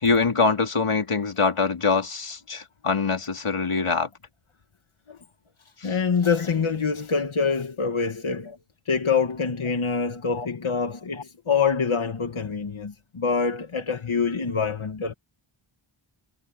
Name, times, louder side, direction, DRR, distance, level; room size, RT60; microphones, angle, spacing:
voice 1, 0.0-4.1 5.8-5.9 10.3-10.5, left 4 dB, 90° left, 2.9 m, -24 dB
voice 2, 5.8-8.5 8.9-15.1, left 5 dB, 75° left, 1.7 m, -25 dB
wide cardioid pair, 55°, 50 cm